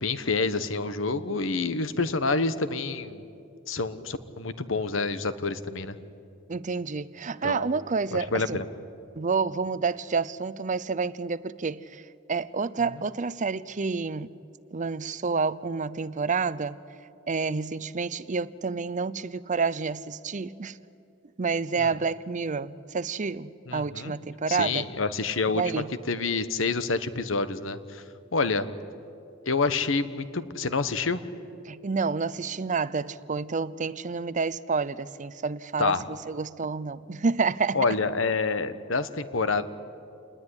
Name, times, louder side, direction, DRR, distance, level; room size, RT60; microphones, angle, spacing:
voice 1, 0.0-3.2 3.7-6.0 7.4-7.7 8.1-8.6 21.8-22.0 23.7-24.1 24.5-28.0 28.3-28.7 29.4-31.2 35.8-36.0 37.7-39.6, left 4 dB, 70° left, 1.2 m, -28 dB
voice 2, 6.5-8.6 9.2-12.0 12.3-14.3 14.7-16.8 17.3-20.8 21.4-24.9 25.5-25.9 31.7-37.8, right 4 dB, 40° right, 0.6 m, -29 dB
28.0 x 20.0 x 9.8 m
head